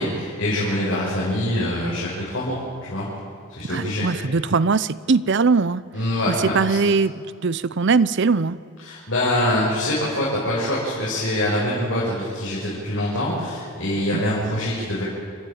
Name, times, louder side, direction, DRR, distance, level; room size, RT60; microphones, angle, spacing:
voice 1, 0.0-3.1 3.6-4.0 5.9-6.8 8.8-15.0, left 1 dB, 70° left, -7 dB, 6.0 m, -24 dB
voice 2, 3.7-5.8 6.3-8.6 14.1-14.2, right 4 dB, 60° right, 17 dB, 0.7 m, -21 dB
30.0 x 12.5 x 8.8 m, 2.2 s
head